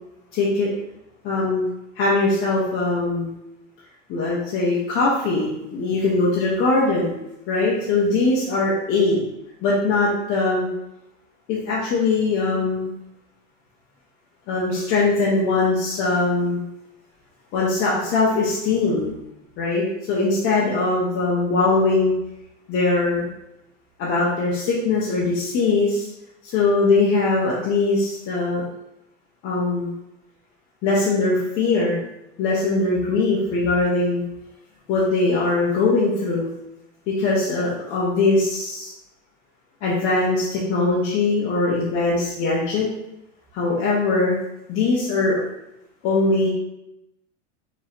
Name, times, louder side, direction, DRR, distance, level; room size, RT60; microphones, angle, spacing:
voice 1, 0.3-0.7 1.2-1.7 1.9-3.3 4.1-7.1 7.5-9.2 9.6-10.7 11.5-12.9 14.5-16.6 17.5-19.2 19.6-22.1 22.7-23.3 24.0-26.1 26.4-28.6 29.4-29.9 30.8-32.0 32.4-34.2 34.9-36.5 37.1-38.9 39.8-42.9 43.5-44.4 44.7-45.4 46.0-46.5, left 3 dB, 35° left, -6 dB, 1.0 m, -21 dB
5.9 x 3.0 x 2.9 m, 0.88 s
supercardioid pair, 145°, 38 cm